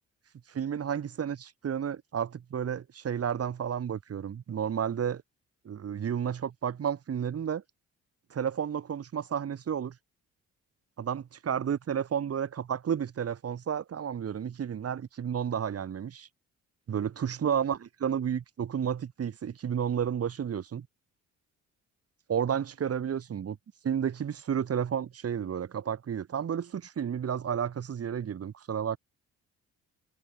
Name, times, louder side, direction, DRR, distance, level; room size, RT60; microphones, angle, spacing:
voice 1, 0.5-5.2 5.6-7.6 8.3-9.9 11.0-16.3 16.9-20.9 22.3-23.6 23.8-29.0, right 8 dB, 50° right, 3.2 m, -31 dB
cardioid pair, 90°, 30 cm